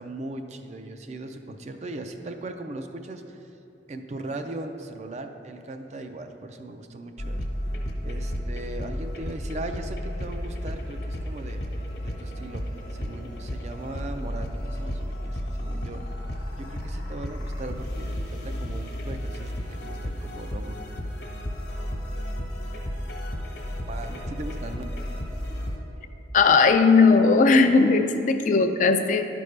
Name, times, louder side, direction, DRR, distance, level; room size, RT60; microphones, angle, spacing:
voice 1, 0.0-3.4 3.9-7.4 8.0-11.6 11.9-12.6 12.9-16.0 16.6-20.8 23.9-24.8, right 2 dB, 40° right, 6 dB, 0.4 m, -38 dB
sound 1, 7.2-25.8, equal, 65° left, 1.1 m, -33 dB
voice 2, 26.3-29.3, left 4 dB, 45° left, 8 dB, 0.4 m, -18 dB
11.5 x 5.3 x 3.3 m, 2.8 s
head